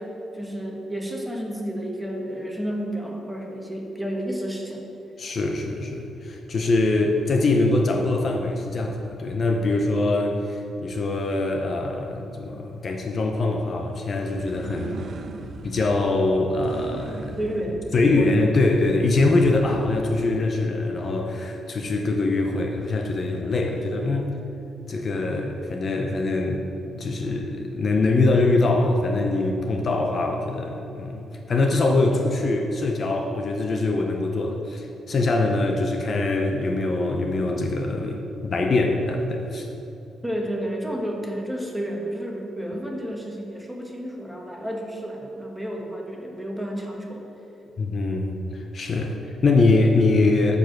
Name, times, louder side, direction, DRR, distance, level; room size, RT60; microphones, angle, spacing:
voice 1, 0.0-4.8 17.4-17.8 18.1-18.6 40.2-47.3, equal, 5° right, 0 dB, 1.3 m, -31 dB
voice 2, 5.2-15.1 15.6-17.4 17.9-24.3 24.9-26.6 26.9-39.7 47.8-50.6, left 2 dB, 40° left, 3 dB, 0.7 m, -23 dB
sound 1, 8.3-9.6 14.3-20.3, right 3 dB, 50° right, 0.6 m, -41 dB
9.7 x 4.8 x 7.7 m, 2.9 s
cardioid pair, 135°, 0 cm